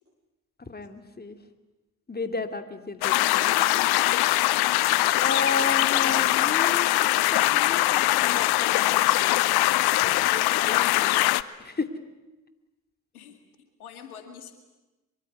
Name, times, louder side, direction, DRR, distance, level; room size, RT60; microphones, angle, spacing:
voice 1, 0.6-1.4 2.1-3.5 5.2-9.1 10.0-11.2 11.6-11.9, left 3 dB, 20° left, 8 dB, 2.7 m, -33 dB
sound 1, 3.0-11.4, left 17 dB, 60° left, 0.9 m, -22 dB
voice 2, 3.1-4.2 13.1-14.5, left 7 dB, 85° left, 7 dB, 2.1 m, -44 dB
24.5 x 23.5 x 9.7 m, 1.1 s
hypercardioid pair, 50°, 43 cm